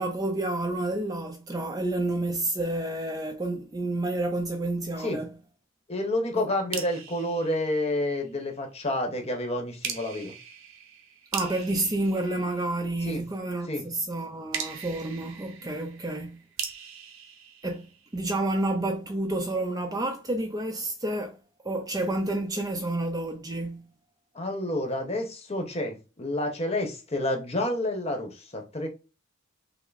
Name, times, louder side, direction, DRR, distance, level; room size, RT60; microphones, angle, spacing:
voice 1, 0.0-5.3 6.3-6.5 11.3-16.4 17.6-17.9 18.1-21.4 21.6-23.8, right 2 dB, 15° right, 0.4 m, -29 dB
voice 2, 5.9-10.3 13.1-13.2 13.7-13.8 24.3-28.9, left 1 dB, 30° left, 0.9 m, -29 dB
sound 1, 6.7-8.4 9.8-13.2 14.5-18.4, right 7 dB, 70° right, 0.9 m, -40 dB
5.7 x 2.0 x 4.0 m
head